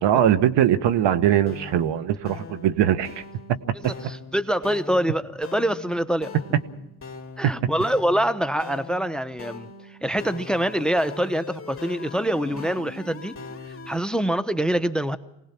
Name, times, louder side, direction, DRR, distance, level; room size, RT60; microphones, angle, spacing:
voice 1, 0.0-3.2 3.5-3.6 3.8-3.9 7.4-7.5, right 10 dB, 65° right, 12 dB, 1.4 m, -21 dB
sound 1, 1.5-14.0, left 3 dB, 25° left, 2.8 m, -41 dB
voice 2, 4.0-6.3 7.4-9.7 10.0-13.4 13.9-15.2, right 1 dB, ahead, 13 dB, 0.9 m, -25 dB
24.0 x 19.0 x 6.0 m, 0.84 s
supercardioid pair, 80°, 47 cm